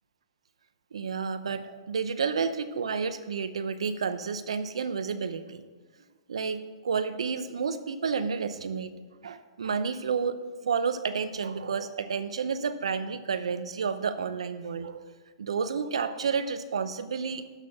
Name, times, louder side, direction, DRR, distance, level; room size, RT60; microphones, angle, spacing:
voice 1, 0.9-5.6 6.3-8.9 9.2-10.4 10.6-15.1 15.4-17.5, right 5 dB, 85° right, 11 dB, 0.7 m, -30 dB
12.5 x 4.4 x 6.0 m, 1.4 s
hypercardioid pair, 135°, 3 cm